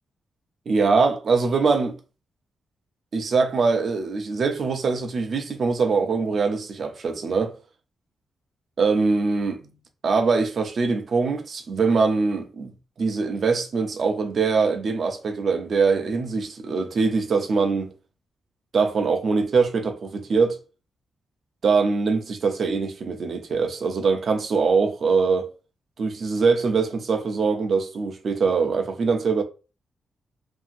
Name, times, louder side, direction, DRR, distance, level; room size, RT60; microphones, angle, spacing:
voice 1, 0.7-2.0 3.1-7.6 8.8-9.7 10.0-12.7 13.0-17.9 18.7-20.6 21.6-25.5 26.0-29.4, right 4 dB, 55° right, 0.5 m, -23 dB
2.8 x 2.7 x 2.4 m
cardioid pair, 100°, 0 cm